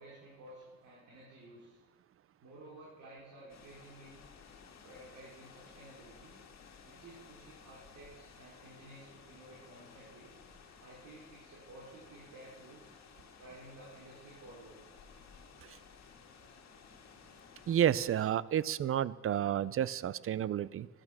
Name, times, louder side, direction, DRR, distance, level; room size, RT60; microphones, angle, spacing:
voice 1, 0.0-1.8 2.4-4.2 4.8-6.4 6.8-10.4 10.8-12.9 13.4-14.9, right 2 dB, 75° right, -5 dB, 3.7 m, -54 dB
sound 1, 3.5-18.3, left 6 dB, 60° left, 1.7 m, -56 dB
voice 2, 17.7-20.9, right 10 dB, 45° right, 19 dB, 0.5 m, -31 dB
12.0 x 11.5 x 6.1 m, 1.3 s
cardioid pair, 90°, 30 cm